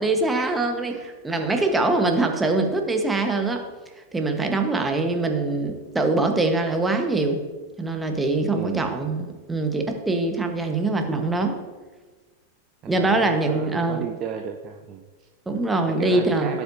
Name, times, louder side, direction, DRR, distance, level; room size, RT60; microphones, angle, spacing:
voice 1, 0.0-3.6 4.1-7.4 7.8-11.6 12.9-14.0 15.5-16.6, right 2 dB, 10° right, 4 dB, 1.3 m, -23 dB
voice 2, 8.5-9.0 12.8-15.3 16.0-16.6, right 7 dB, 30° right, 4 dB, 0.7 m, -34 dB
17.0 x 8.2 x 2.8 m, 1.3 s
figure-of-eight pair, 90°, 0 cm